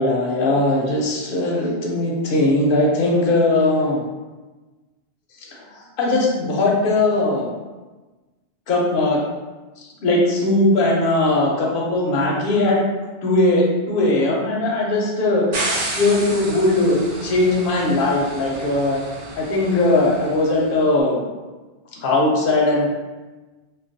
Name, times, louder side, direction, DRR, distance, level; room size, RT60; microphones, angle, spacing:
voice 1, 0.0-4.0 5.7-7.5 8.7-9.2 10.0-12.8 13.2-15.5 16.0-19.0 19.4-21.3 22.0-22.9, left 2 dB, 60° left, -2 dB, 0.7 m, -19 dB
sound 1, 15.5-20.7, right 2 dB, 65° right, 0.8 m, -31 dB
2.2 x 2.2 x 2.5 m, 1.2 s
omnidirectional pair, 1.1 m